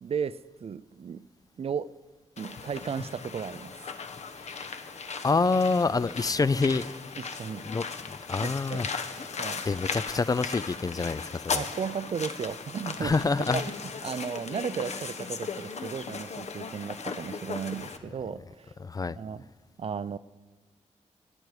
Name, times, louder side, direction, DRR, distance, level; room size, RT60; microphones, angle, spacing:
voice 1, 0.0-1.2 1.6-1.9 2.4-3.8 7.2-7.7 8.4-8.8 9.2-9.6 11.5-13.2 13.5-13.6 14.0-18.7 19.1-19.4 19.8-20.2, right 6 dB, 50° right, 17 dB, 0.4 m, -35 dB
sound 1, 2.4-18.0, left 5 dB, 65° left, 1.0 m, -37 dB
voice 2, 5.2-6.9 7.6-8.9 9.2-9.3 9.7-11.6 13.0-13.6 18.8-19.2, left 4 dB, 30° left, 17 dB, 0.4 m, -27 dB
20.0 x 10.5 x 4.9 m, 1.3 s
wide cardioid pair, 110°, 13 cm